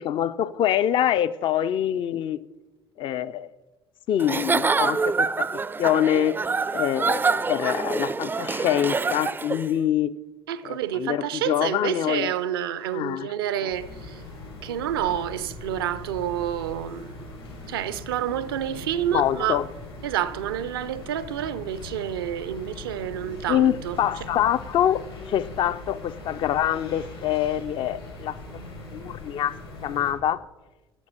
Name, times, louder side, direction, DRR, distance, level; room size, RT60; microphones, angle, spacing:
voice 1, 0.0-2.4 3.0-3.5 4.1-5.5 5.8-6.4 6.7-10.1 10.6-12.3 12.9-13.3 19.1-19.7 23.5-28.4 28.9-29.6 29.8-30.4, left 11 dB, 40° left, 0.4 m, -25 dB
Giggle / Chuckle chortle, 4.2-9.7, right 4 dB, 15° right, 0.4 m, -26 dB
voice 2, 10.5-14.2 14.6-17.3 17.7-19.6 20.0-24.0, right 10 dB, 70° right, 0.6 m, -29 dB
sound 1, 13.7-30.1, left 2 dB, 80° left, 3.1 m, -41 dB
12.5 x 7.0 x 6.4 m
figure-of-eight pair, 55°, 13 cm